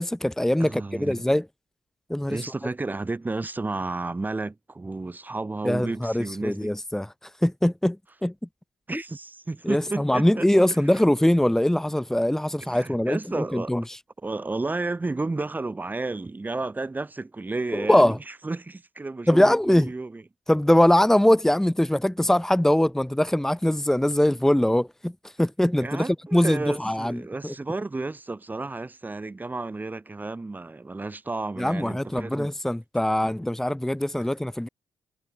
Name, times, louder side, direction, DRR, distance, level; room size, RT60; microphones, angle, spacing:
voice 1, 0.0-1.4 2.1-2.4 5.6-7.1 7.4-8.0 8.2-8.3 8.9-9.0 9.6-13.8 17.7-18.2 19.3-19.9 20.5-25.1 25.4-26.0 26.3-27.5 31.6-34.7, left 1 dB, 5° left, 1.5 m, -22 dB
voice 2, 0.6-1.2 2.3-6.7 8.9-10.5 10.8-11.0 12.6-13.7 14.2-20.2 25.8-32.5, right 3 dB, 25° right, 7.7 m, -32 dB
hypercardioid pair, 45°, 7 cm